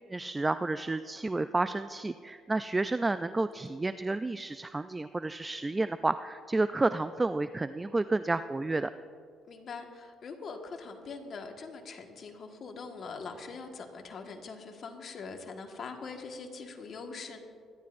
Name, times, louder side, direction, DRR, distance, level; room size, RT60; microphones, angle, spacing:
voice 1, 0.1-8.9, right 2 dB, 20° right, 12 dB, 0.3 m, -30 dB
voice 2, 9.5-17.4, left 4 dB, 50° left, 4 dB, 1.5 m, -43 dB
25.0 x 11.5 x 2.6 m, 2.3 s
supercardioid pair, 80°, 0 cm